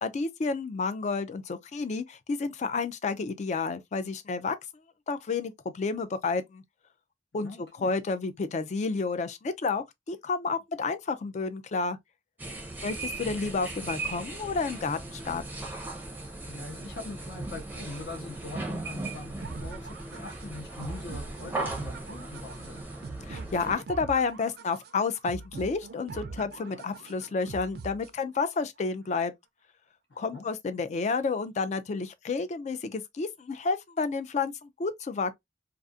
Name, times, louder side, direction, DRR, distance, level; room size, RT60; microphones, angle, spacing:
voice 1, 0.0-4.6 5.1-6.6 7.3-7.5 7.8-12.0 12.8-15.4 23.2-29.3 30.2-35.3, left 4 dB, 40° left, 0.3 m, -30 dB
voice 2, 7.4-7.9 16.5-22.8 30.1-30.5, left 3 dB, 70° left, 0.9 m, -42 dB
sound 1, 12.4-23.8, right 2 dB, 10° right, 0.6 m, -38 dB
sound 2, 19.4-28.4, right 4 dB, 60° right, 0.4 m, -43 dB
2.4 x 2.4 x 2.5 m
head